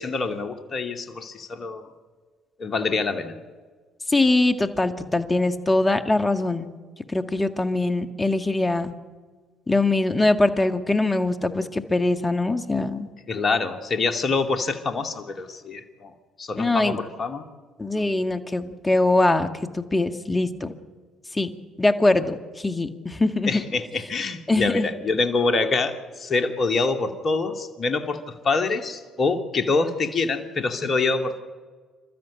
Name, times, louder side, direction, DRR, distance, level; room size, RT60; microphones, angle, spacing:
voice 1, 0.0-1.9 2.6-3.4 13.3-17.4 17.9-18.1 23.5-31.4, left 3 dB, 45° left, 6 dB, 2.4 m, -25 dB
voice 2, 4.1-6.7 7.1-8.9 9.7-13.1 16.6-17.0 17.8-19.5 19.7-20.7 21.3-21.5 21.8-23.6 24.5-24.9, left 2 dB, 20° left, 8 dB, 2.0 m, -22 dB
28.5 x 13.0 x 8.5 m, 1.5 s
hypercardioid pair, 50°, 0 cm